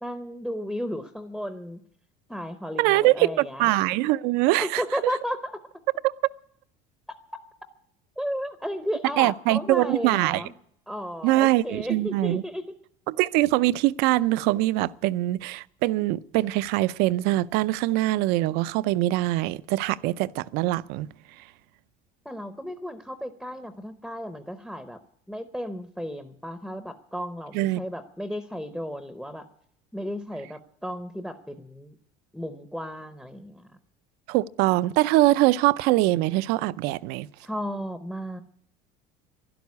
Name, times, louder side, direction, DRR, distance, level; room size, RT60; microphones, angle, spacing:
voice 1, 0.0-1.8 2.3-3.7 4.6-5.6 8.2-10.5 10.9-12.6 22.2-25.0 25.3-29.5 29.9-32.0 32.3-33.7 37.4-38.4, equal, ahead, 0.7 m, -34 dB
voice 2, 2.8-4.8 9.2-10.4 11.2-12.4 13.1-21.1 27.5-27.8 34.3-37.3, right 17 dB, 65° right, 0.5 m, -23 dB
12.0 x 11.5 x 9.5 m
cardioid pair, 155°, 18 cm